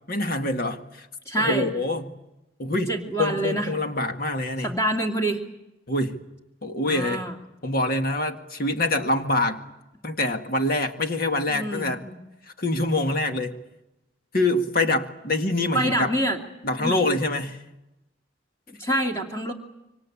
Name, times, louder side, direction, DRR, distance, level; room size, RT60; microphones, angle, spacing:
voice 1, 0.1-1.1 1.4-2.1 2.6-4.7 5.9-6.2 6.6-7.2 7.6-9.6 10.0-12.0 12.4-13.6 14.3-16.1 16.6-17.6, left 2 dB, 50° left, 2.0 m, -25 dB
voice 2, 1.3-1.7 2.9-3.7 4.6-5.4 6.8-7.3 11.5-12.2 15.7-16.4 16.8-17.0 18.7-19.5, right 1 dB, 15° left, 2.6 m, -26 dB
26.0 x 24.5 x 8.6 m
head